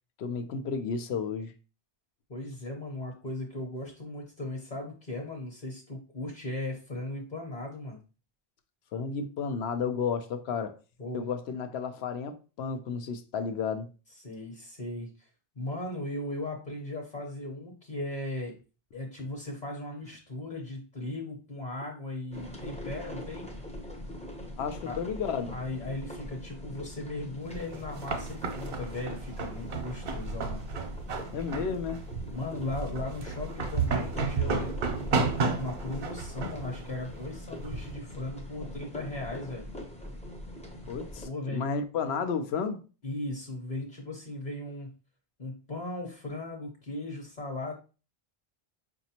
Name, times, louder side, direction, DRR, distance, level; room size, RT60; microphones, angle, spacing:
voice 1, 0.2-1.5 8.9-10.8 11.1-13.9 24.6-25.6 31.3-32.1 40.9-42.8, left 6 dB, 85° left, 0.8 m, -32 dB
voice 2, 2.3-8.0 11.0-11.3 14.2-15.3 15.6-18.5 18.9-23.5 24.9-25.0 25.5-30.6 32.3-35.2 35.6-39.7 41.2-41.7 43.0-44.9 45.4-47.7, left 2 dB, 45° left, 0.9 m, -37 dB
sound 1, 22.3-41.3, left 1 dB, 10° left, 0.4 m, -42 dB
sound 2, 27.5-37.9, right 4 dB, 65° right, 0.9 m, -33 dB
4.9 x 2.6 x 2.8 m
omnidirectional pair, 1.1 m